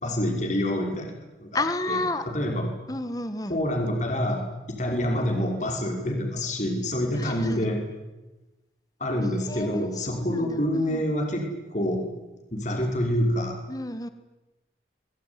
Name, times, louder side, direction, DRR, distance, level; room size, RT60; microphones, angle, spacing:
voice 1, 0.0-2.7 3.5-7.9 9.0-12.1 12.5-13.6, equal, 40° left, 2 dB, 5.6 m, -27 dB
voice 2, 1.5-2.2 2.9-3.6 7.2-7.7 9.2-11.0 13.7-14.1, left 2 dB, 20° left, 10 dB, 1.7 m, -31 dB
25.5 x 22.5 x 9.9 m, 1.1 s
head